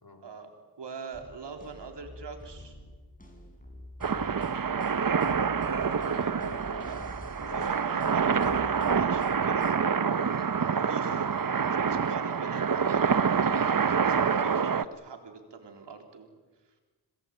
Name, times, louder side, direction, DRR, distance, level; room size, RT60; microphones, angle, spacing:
voice 1, 0.8-2.8 7.5-16.3, right 5 dB, 90° right, 4 dB, 3.8 m, -44 dB
sound 1, 1.1-9.7, equal, 20° left, 7.5 m, -47 dB
sound 2, 4.0-14.8, right 6 dB, 55° right, 1.1 m, -27 dB
voice 2, 6.0-7.0 7.4-7.7, left 3 dB, 60° left, 8 dB, 4.9 m, -47 dB
27.5 x 20.0 x 9.0 m, 1.3 s
cardioid pair, 50°, 41 cm